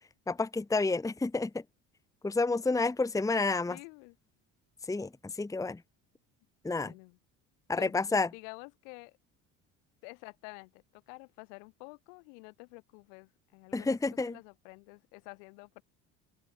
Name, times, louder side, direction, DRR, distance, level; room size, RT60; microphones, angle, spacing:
voice 1, 0.3-1.5 2.2-3.8 4.9-5.1 5.4-5.8 6.6-6.9 7.7-8.3 13.7-14.4, left 3 dB, 10° left, 1.0 m, -29 dB
voice 2, 3.7-4.2 6.8-7.2 7.8-9.2 10.0-15.8, left 39 dB, 85° left, 6.8 m, -50 dB
open air
supercardioid pair, 80°, 37 cm